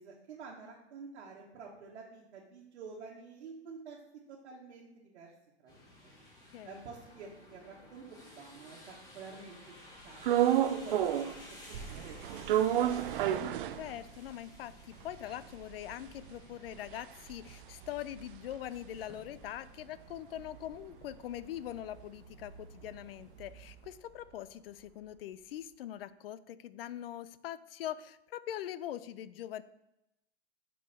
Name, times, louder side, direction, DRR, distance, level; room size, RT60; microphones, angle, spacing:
voice 1, 0.0-4.0 4.3-5.3 5.6-6.1 6.6-9.6 10.0-11.2 11.5-13.2, right 5 dB, 70° right, -3 dB, 1.4 m, -49 dB
sound 1, 5.7-23.9, left 1 dB, 10° left, 1.5 m, -56 dB
sound 2, 10.2-11.4 11.7-14.3 14.7-14.8 15.0-19.5 19.8-23.9, right 11 dB, 50° right, 0.5 m, -33 dB
voice 2, 13.8-29.6, left 12 dB, 60° left, 16 dB, 0.4 m, -42 dB
5.4 x 5.4 x 4.2 m, 0.87 s
hypercardioid pair, 145°, 34 cm